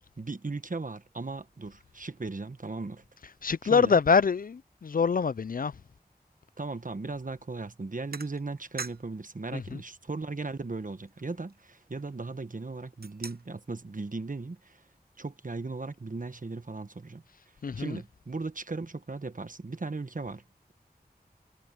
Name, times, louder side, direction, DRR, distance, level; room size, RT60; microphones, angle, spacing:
voice 1, 0.2-3.0 3.6-4.0 6.6-14.8 15.2-17.2 17.8-20.4, right 3 dB, 55° right, 1.3 m, -37 dB
voice 2, 3.4-5.7 9.5-9.8 17.6-18.0, left 5 dB, 60° left, 0.4 m, -25 dB
sound 1, 7.2-7.5 8.1-9.2 9.6-9.7 10.3-10.4 10.6-12.3 12.8-13.7, right 4 dB, 70° right, 0.9 m, -44 dB
wide cardioid pair, 45°, 17 cm